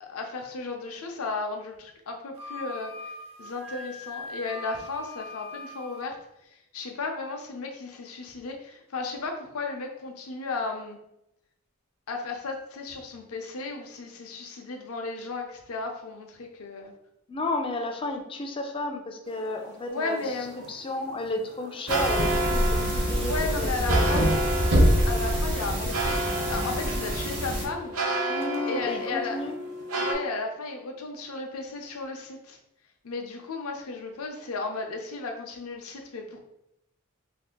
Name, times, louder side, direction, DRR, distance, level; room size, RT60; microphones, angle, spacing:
voice 1, 0.0-2.9 3.4-6.2 6.7-11.0 12.1-16.9 19.9-20.5 23.3-24.3 25.0-26.2 26.5-28.0 28.6-29.5 30.0-32.6 33.0-36.4, left 3 dB, 70° left, 3 dB, 0.6 m, -34 dB
Wind instrument woodwind instrument, 2.3-6.1, left 2 dB, 25° right, 0.6 m, -41 dB
voice 2, 17.3-22.6 22.9-24.6 25.8-25.9 28.3-29.6, left 2 dB, 25° left, 3 dB, 0.4 m, -33 dB
sound 1, 19.3-30.1, right 1 dB, 80° right, 0.6 m, -31 dB
sound 2, 21.9-27.7, equal, 55° right, 0.9 m, -25 dB
2.6 x 2.5 x 3.7 m, 0.83 s
head